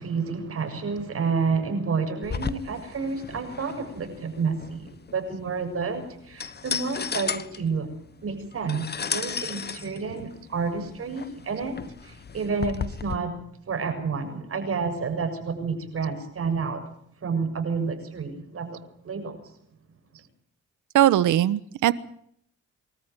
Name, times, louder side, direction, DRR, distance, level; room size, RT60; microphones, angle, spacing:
voice 1, 0.0-7.9 8.2-13.4 13.7-16.8 17.2-18.8 19.0-19.4, right 5 dB, 50° right, 6 dB, 7.2 m, -29 dB
sound 1, 2.2-13.2, left 6 dB, 35° left, 1.3 m, -35 dB
voice 2, 20.9-21.9, right 13 dB, 80° right, 17 dB, 1.2 m, -20 dB
24.0 x 14.0 x 9.3 m, 0.68 s
cardioid pair, 90°, 30 cm